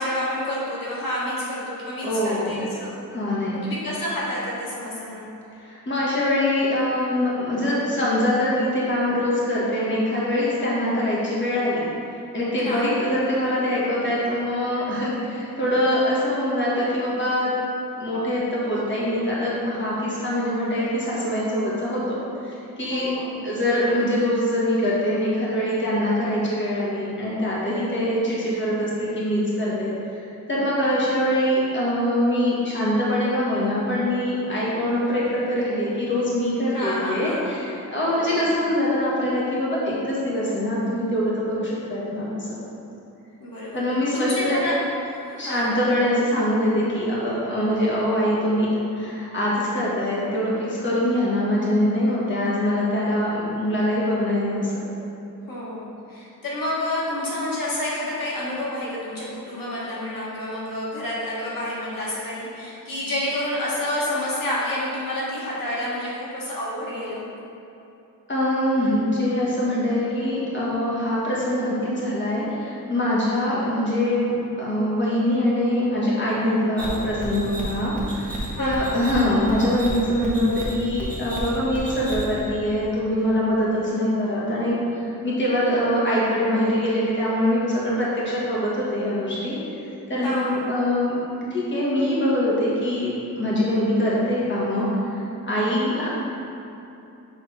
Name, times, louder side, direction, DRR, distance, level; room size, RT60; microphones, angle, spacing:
voice 1, 0.0-2.9 3.6-5.3 12.6-13.0 22.9-23.5 36.7-37.4 38.1-38.5 43.4-43.8 44.1-44.8 45.0-45.7 55.5-67.3 78.5-79.0 90.2-90.7, left 1 dB, 80° left, -7 dB, 1.5 m, -29 dB
voice 2, 2.0-2.6 3.1-3.6 5.6-11.8 12.3-17.5 18.0-22.0 22.4-23.1 23.4-29.9 30.5-42.6 43.7-44.5 45.3-48.7 48.9-54.7 68.3-89.6 90.1-91.1 91.5-96.2, left 1 dB, 35° left, -7 dB, 1.4 m, -23 dB
sound 1, 76.8-82.5, right 1 dB, 5° left, 1.1 m, -32 dB
6.7 x 3.5 x 4.7 m, 2.8 s
wide cardioid pair, 145°, 33 cm